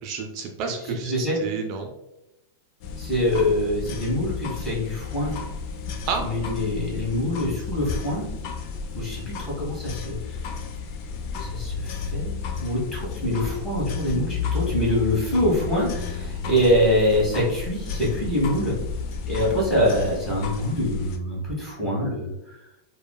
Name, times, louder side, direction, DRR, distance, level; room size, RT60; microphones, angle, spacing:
voice 1, 0.0-1.9 6.1-6.3, right 5 dB, 50° right, 4 dB, 0.3 m, -30 dB
voice 2, 0.8-1.4 3.0-5.3 6.2-8.3 8.9-10.4 11.4-12.4 12.6-18.8 19.3-22.6, equal, 15° left, -6 dB, 1.4 m, -25 dB
sound 1, 2.8-21.2, left 5 dB, 50° left, 0.3 m, -32 dB
3.0 x 2.0 x 2.2 m, 0.91 s
hypercardioid pair, 120°, 0 cm